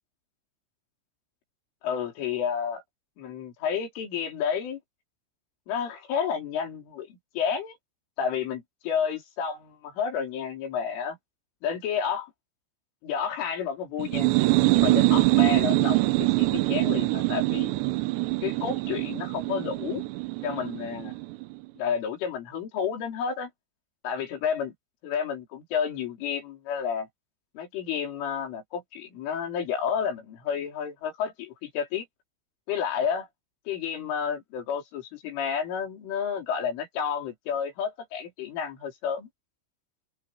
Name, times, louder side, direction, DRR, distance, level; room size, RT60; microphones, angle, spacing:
voice 1, 1.8-2.8 3.2-4.8 5.7-7.1 7.4-7.8 8.2-11.2 11.6-12.3 13.0-14.3 14.7-17.7 18.4-20.1 20.4-21.2 21.8-23.5 24.0-24.7 25.0-27.1 27.6-32.1 32.7-33.3 33.7-39.3, left 7 dB, 80° left, 6.7 m, -30 dB
sound 1, 14.0-21.5, right 21 dB, 75° right, 2.9 m, -24 dB
open air
omnidirectional pair, 5.6 m